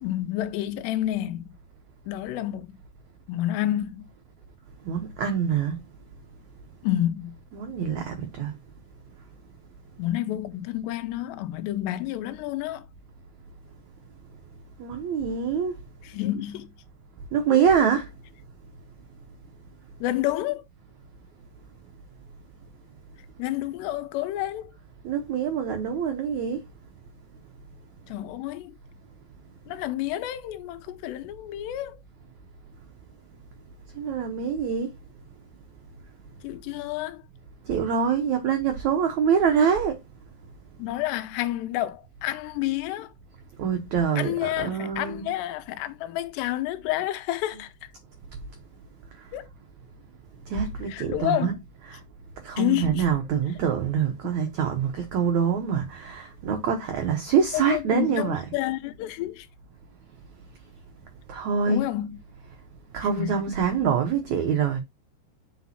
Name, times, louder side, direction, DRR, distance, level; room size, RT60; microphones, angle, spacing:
voice 1, 0.0-1.5 2.1-2.7 3.3-4.1 6.8-7.3 10.0-12.9 16.0-16.7 17.5-17.9 20.0-20.6 23.4-24.7 28.1-28.7 29.7-32.0 36.4-37.2 40.8-43.1 44.2-47.9 49.3-49.5 50.9-51.6 52.6-53.1 57.5-59.5 61.7-62.2 63.0-63.4, left 14 dB, 90° left, 2.9 m, -29 dB
voice 2, 4.9-5.8 7.6-8.5 14.8-15.7 17.3-18.1 25.0-26.6 34.0-34.9 37.7-40.0 43.6-45.2 50.5-51.5 51.9-52.0 52.4-58.4 61.3-61.9 62.9-64.8, right 7 dB, 80° right, 1.6 m, -25 dB
8.3 x 5.4 x 2.8 m
omnidirectional pair, 4.8 m